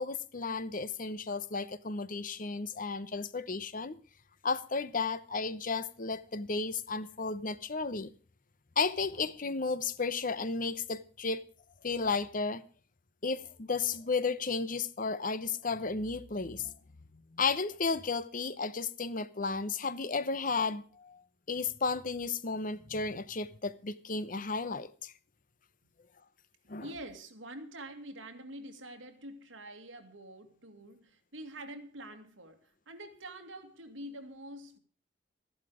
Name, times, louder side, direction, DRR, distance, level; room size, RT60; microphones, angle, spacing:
voice 1, 0.0-4.0 4.4-8.1 8.8-11.4 11.8-12.6 13.2-16.8 17.3-21.2 21.5-25.1 26.7-26.9, left 4 dB, 45° left, 0.9 m, -33 dB
voice 2, 26.8-34.8, right 1 dB, 90° right, 2.4 m, -46 dB
14.5 x 11.5 x 5.0 m
head